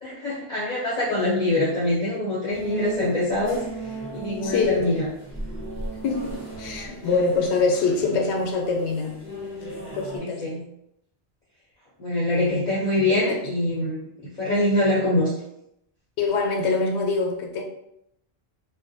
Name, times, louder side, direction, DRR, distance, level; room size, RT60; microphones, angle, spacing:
voice 1, 0.0-3.6 4.1-5.1 10.2-10.7 12.0-15.3, left 1 dB, 45° left, -7 dB, 0.7 m, -24 dB
sound 1, 2.5-10.2, right 2 dB, 10° left, 0.9 m, -37 dB
voice 2, 4.4-4.8 6.0-9.2 9.9-10.4 13.3-13.4 16.2-17.6, left 4 dB, 90° left, 2 dB, 0.9 m, -24 dB
2.5 x 2.1 x 2.6 m, 0.78 s
omnidirectional pair, 1.1 m